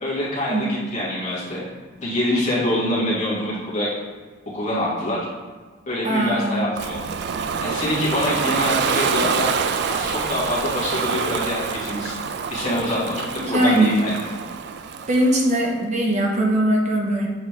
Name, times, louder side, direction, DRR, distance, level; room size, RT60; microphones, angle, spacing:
voice 1, 0.0-1.6 2.0-3.9 4.5-5.3 5.9-7.1 7.6-9.5 9.9-12.2 12.5-14.1, left 1 dB, 40° left, -7 dB, 1.8 m, -25 dB
voice 2, 6.0-7.0 13.4-14.1 15.1-17.3, right 1 dB, 35° right, 0 dB, 0.7 m, -21 dB
Ocean, 6.8-15.6, right 6 dB, 55° right, 0.3 m, -26 dB
7.4 x 4.2 x 3.3 m, 1.4 s
head